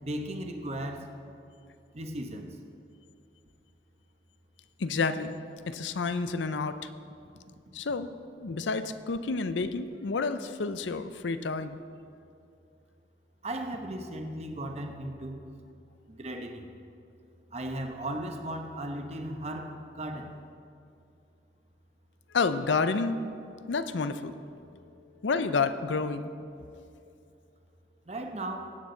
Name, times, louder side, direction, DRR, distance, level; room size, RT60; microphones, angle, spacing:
voice 1, 0.0-1.1 1.9-2.6 13.4-15.4 16.1-16.7 17.5-20.4 28.1-28.8, right 1 dB, 35° right, 4 dB, 0.9 m, -36 dB
voice 2, 4.8-5.4 5.7-6.9 7.7-8.1 8.4-11.8 22.3-23.2 23.7-24.3 25.2-26.3, left 4 dB, 85° left, 12 dB, 0.6 m, -29 dB
17.5 x 8.6 x 3.9 m, 2.5 s
head